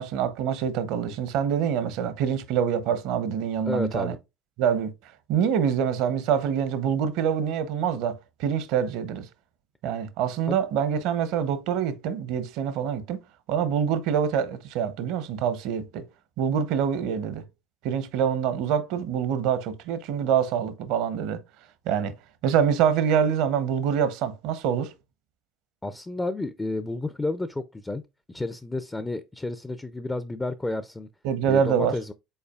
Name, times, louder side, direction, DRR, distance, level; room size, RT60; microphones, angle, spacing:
voice 1, 0.0-4.1 4.6-4.9 5.3-9.3 9.8-13.2 13.5-16.0 16.4-17.4 17.8-21.4 21.9-22.1 22.4-24.9 31.2-32.0, right 8 dB, 70° right, 0.7 m, -25 dB
voice 2, 3.7-4.2 10.5-10.6 25.8-28.0 28.3-31.1 31.5-32.1, left 2 dB, 15° left, 0.4 m, -31 dB
5.5 x 3.9 x 2.3 m
supercardioid pair, 95°, 0 cm